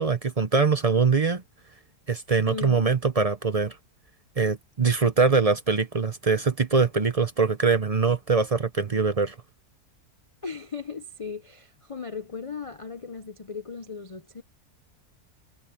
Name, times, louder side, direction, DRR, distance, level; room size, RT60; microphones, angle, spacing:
voice 1, 0.0-1.4 2.1-3.8 4.4-9.3, right 4 dB, 35° right, 0.6 m, -23 dB
voice 2, 2.5-2.9 10.4-14.4, left 5 dB, 55° left, 0.3 m, -37 dB
omnidirectional pair, 1.6 m